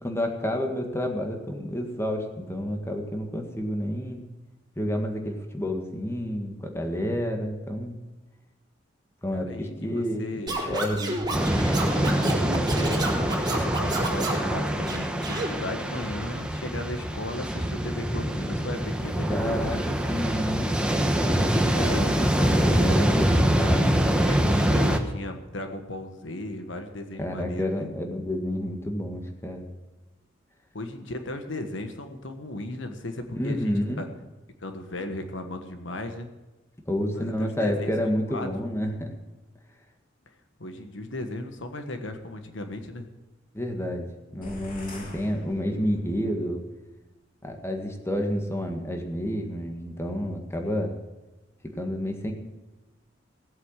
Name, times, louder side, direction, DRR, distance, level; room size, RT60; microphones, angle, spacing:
voice 1, 0.0-4.3 4.8-8.0 9.2-11.2 19.3-19.8 20.1-20.9 22.8-23.2 23.4-23.8 27.2-29.6 33.3-34.0 36.9-39.2 43.5-46.6 47.4-50.9 51.6-52.3, equal, 15° left, 3 dB, 1.8 m, -29 dB
voice 2, 9.3-10.6 11.9-13.1 13.3-19.9 21.7-23.0 23.4-23.9 24.2-27.9 30.7-34.1 34.6-36.3 37.1-38.5 40.6-43.1, left 1 dB, 75° left, 6 dB, 1.4 m, -36 dB
Scratching (performance technique), 10.5-14.5 14.9-15.5, right 2 dB, 25° right, 4.3 m, -30 dB
sound 1, 11.3-25.0, equal, 5° right, 1.1 m, -24 dB
sound 2, 44.4-46.3, left 1 dB, 50° left, 2.6 m, -43 dB
17.5 x 8.2 x 7.4 m, 1.1 s
head